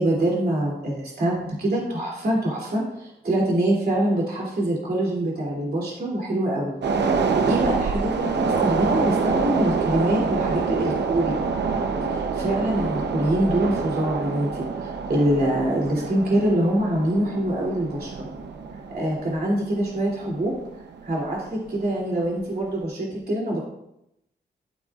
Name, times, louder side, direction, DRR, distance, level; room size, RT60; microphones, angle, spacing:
voice 1, 0.0-6.7 7.1-11.4 12.1-18.3 18.9-20.5 21.0-23.6, right 1 dB, 60° right, -3 dB, 2.9 m, -24 dB
sound 1, 6.8-21.4 21.7-21.9, right 5 dB, 80° right, 0.8 m, -26 dB
13.5 x 8.1 x 2.4 m, 0.82 s
wide cardioid pair, 155°, 18 cm